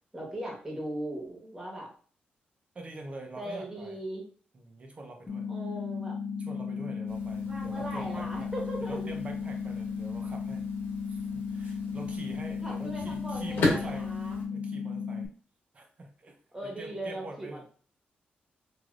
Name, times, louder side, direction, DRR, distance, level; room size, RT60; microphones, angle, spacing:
voice 1, 0.1-1.9 3.4-4.2 5.5-6.2 7.4-9.0 12.6-14.4 16.5-17.6, right 1 dB, 15° right, -2 dB, 1.2 m, -38 dB
voice 2, 2.7-4.0 4.5-5.5 6.4-8.5 8.8-10.7 11.1-14.1 14.5-15.3 15.7-17.6, right 2 dB, 40° right, 3 dB, 0.7 m, -45 dB
sound 1, 5.3-15.3, left 5 dB, 30° left, 0.4 m, -35 dB
sound 2, 7.1-14.4, left 2 dB, 85° left, 1.1 m, -37 dB
3.3 x 2.6 x 2.5 m, 0.43 s
cardioid pair, 90°, 4 cm